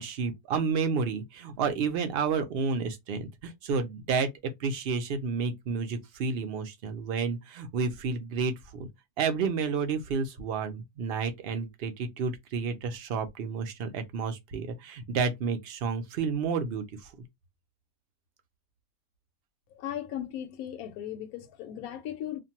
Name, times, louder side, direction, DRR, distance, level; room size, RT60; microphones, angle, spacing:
voice 1, 0.0-8.9 9.2-16.8, right 5 dB, 60° right, 0.7 m, -30 dB
voice 2, 19.7-22.4, left 11 dB, 85° left, 1.1 m, -37 dB
2.5 x 2.2 x 2.8 m
omnidirectional pair, 1.5 m